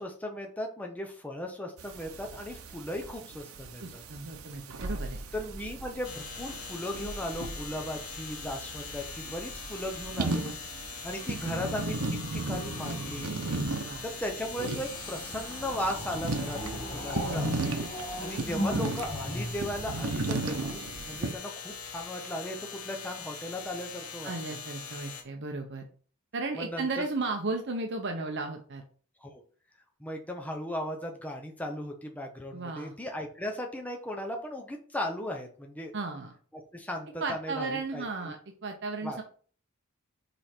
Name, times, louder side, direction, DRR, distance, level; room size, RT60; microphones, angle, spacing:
voice 1, 0.0-4.0 5.3-10.5 11.0-13.3 14.0-16.6 16.9-17.5 18.2-24.6 26.6-27.1 29.2-29.4 30.0-35.9 36.5-38.3 39.0-39.2, left 1 dB, 5° left, 2 dB, 0.8 m, -37 dB
sound 1, 1.8-21.3, right 3 dB, 85° right, 0.8 m, -36 dB
voice 2, 3.8-5.3 13.8-14.0 17.2-17.6 24.2-25.8 26.3-28.8 32.5-32.9 35.9-36.3 37.2-39.2, right 3 dB, 55° right, 4 dB, 0.8 m, -35 dB
sound 2, 6.0-25.2, left 6 dB, 80° left, 1.4 m, -42 dB
sound 3, 11.2-13.3 14.4-20.8 21.7-22.0, left 1 dB, 25° left, 1.6 m, -39 dB
5.4 x 4.3 x 4.4 m, 0.43 s
head